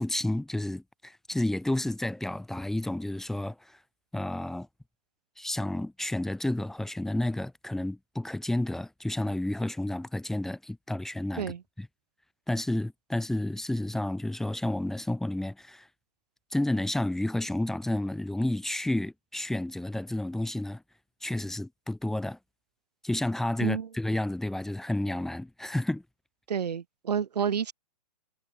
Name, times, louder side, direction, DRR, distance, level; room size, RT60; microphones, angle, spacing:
voice 1, 0.0-3.8 4.1-4.7 5.4-11.9 12.5-15.9 16.5-20.8 21.2-22.4 23.0-26.0, left 1 dB, ahead, 1.7 m, -31 dB
voice 2, 26.5-27.7, right 7 dB, 90° right, 2.6 m, -29 dB
hypercardioid pair, 160°, 20 cm